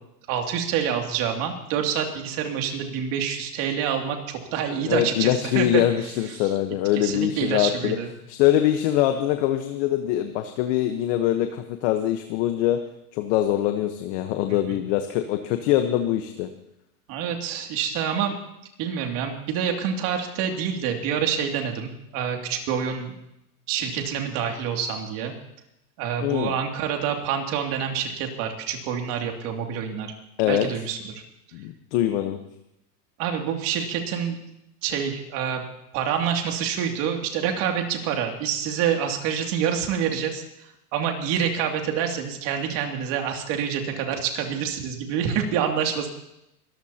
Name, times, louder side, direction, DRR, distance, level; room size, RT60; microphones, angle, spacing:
voice 1, 0.3-5.7 6.4-6.5 6.9-8.1 14.5-14.8 17.1-18.4 18.8-23.1 23.7-25.3 26.0-30.1 30.5-31.1 33.2-34.4 34.8-35.6 35.9-40.4 40.9-46.1, right 8 dB, 45° right, 3 dB, 2.7 m, -27 dB
voice 2, 4.7-8.0 8.3-12.8 13.1-16.5 26.2-26.5 30.4-30.7 31.5-32.4, left 12 dB, 50° left, 7 dB, 1.2 m, -23 dB
23.5 x 14.5 x 2.9 m, 0.85 s
supercardioid pair, 135°, 46 cm